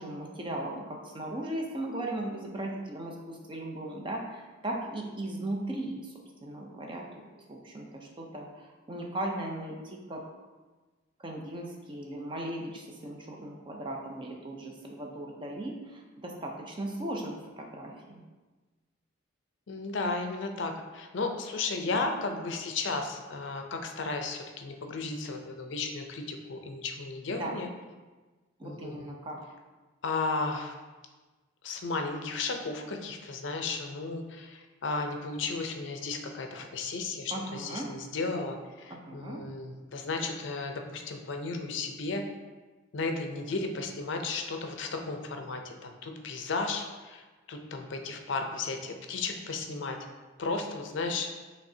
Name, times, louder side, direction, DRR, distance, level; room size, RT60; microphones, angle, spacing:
voice 1, 0.0-6.1 6.4-7.2 7.5-10.2 11.2-18.2 27.3-27.5 28.6-29.4 37.3-37.9 38.9-39.4, right 1 dB, 25° right, 0 dB, 0.5 m, -37 dB
voice 2, 19.7-27.7 28.6-29.2 30.0-30.7 31.6-42.2 42.9-50.0 50.4-51.3, left 3 dB, 65° left, 4 dB, 0.5 m, -34 dB
5.8 x 3.2 x 2.7 m, 1.3 s
head